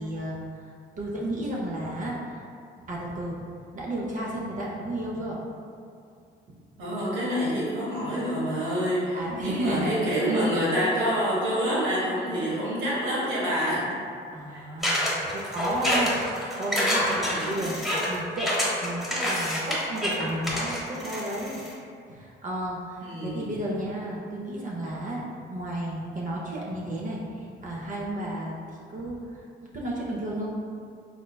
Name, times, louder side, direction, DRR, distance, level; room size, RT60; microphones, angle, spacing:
voice 1, 0.0-2.4 2.8-5.4 9.1-10.1 14.3-21.6 22.1-29.5 29.7-30.5, right 1 dB, 40° right, -4 dB, 0.5 m, -33 dB
voice 2, 6.8-14.0 14.5-14.7 17.0-17.7 23.0-23.6, equal, 80° right, -7 dB, 1.2 m, -27 dB
sound 1, 14.8-21.7, equal, ahead, 0.9 m, -27 dB
4.3 x 2.1 x 2.2 m, 2.4 s
cardioid pair, 90°, 20 cm